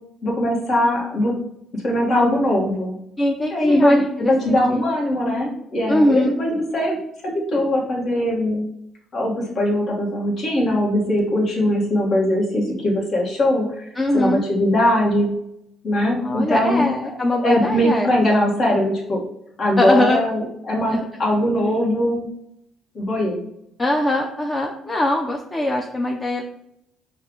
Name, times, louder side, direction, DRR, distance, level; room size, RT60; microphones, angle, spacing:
voice 1, 0.2-1.4 1.7-3.0 3.5-7.0 7.2-8.6 9.1-13.9 14.1-15.3 15.8-16.9 17.4-19.2 19.6-22.3 22.9-23.4, left 1 dB, 50° left, -3 dB, 1.4 m, -20 dB
voice 2, 3.2-4.8 5.9-6.4 14.0-14.4 16.2-18.1 19.8-20.2 20.9-21.0 23.8-26.4, left 1 dB, 20° left, 2 dB, 0.5 m, -22 dB
5.3 x 2.4 x 3.7 m, 0.78 s
cardioid pair, 95°, 0 cm